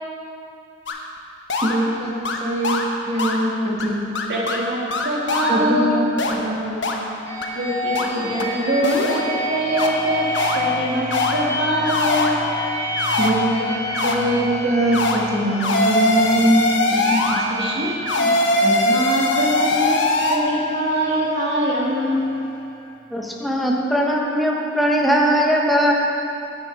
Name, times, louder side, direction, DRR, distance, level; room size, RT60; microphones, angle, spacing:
sound 1, 0.9-1.0 1.5-1.7 2.2-2.4 2.6-2.8 3.2-3.4 3.8-3.9 4.1-4.6 4.9-5.5 6.2-6.3 6.8-6.9 7.4-7.5 7.9-8.1 8.4-8.5 8.8-9.2 9.8-9.9 10.3-10.6 11.1-11.3 11.8-12.3 13.0-13.3 13.9-14.1 14.9-15.2 15.6-17.4 18.1-20.4, left 2 dB, 70° left, 1.0 m, -21 dB
voice 1, 1.6-3.9 5.5-6.9 13.2-16.6 16.9-17.6, right 1 dB, 35° right, -3 dB, 1.8 m, -22 dB
voice 2, 4.3-6.1 7.5-10.3 10.5-12.5 17.5-18.3 18.6-20.0 20.3-22.3, equal, 60° right, -6 dB, 2.3 m, -23 dB
sound 2, 7.2-22.9, left 1 dB, 15° left, 1.9 m, -29 dB
voice 3, 23.1-25.9, equal, ahead, -2 dB, 1.0 m, -19 dB
11.0 x 9.5 x 4.8 m, 2.7 s
head